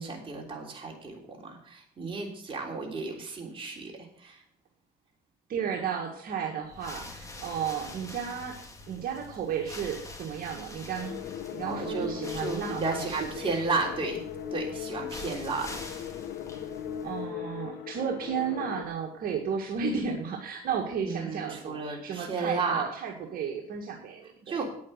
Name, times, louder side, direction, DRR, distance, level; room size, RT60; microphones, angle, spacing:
voice 1, 0.0-3.9 4.2-4.4 11.6-14.2 14.5-15.8 21.0-22.8 24.5-24.7, right 4 dB, 30° right, 0 dB, 3.5 m, -33 dB
voice 2, 5.5-8.6 8.9-11.2 11.5-13.5 17.0-24.6, right 7 dB, 60° right, 0 dB, 1.8 m, -33 dB
sound 1, 6.6-17.3, left 2 dB, 20° left, 2.1 m, -45 dB
sound 2, 10.9-18.8, left 9 dB, 75° left, 1.0 m, -38 dB
9.2 x 8.4 x 6.5 m, 0.63 s
cardioid pair, 110°, 17 cm